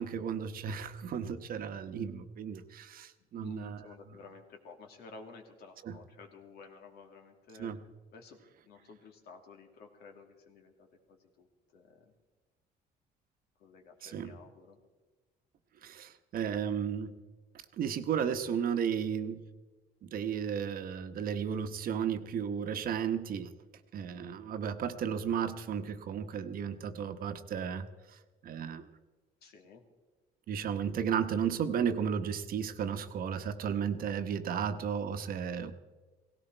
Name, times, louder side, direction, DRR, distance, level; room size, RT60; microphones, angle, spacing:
voice 1, 0.0-3.8 5.8-6.0 7.6-7.8 14.0-14.3 15.8-17.1 17.8-19.4 20.0-23.5 23.9-28.9 30.5-35.7, right 7 dB, 60° right, 9 dB, 1.1 m, -34 dB
voice 2, 3.4-7.7 8.1-8.4 8.6-11.5 11.7-12.1 13.6-14.8 29.4-29.8, left 4 dB, 70° left, 3 dB, 2.5 m, -53 dB
17.5 x 16.5 x 4.6 m, 1.3 s
cardioid pair, 110°, 17 cm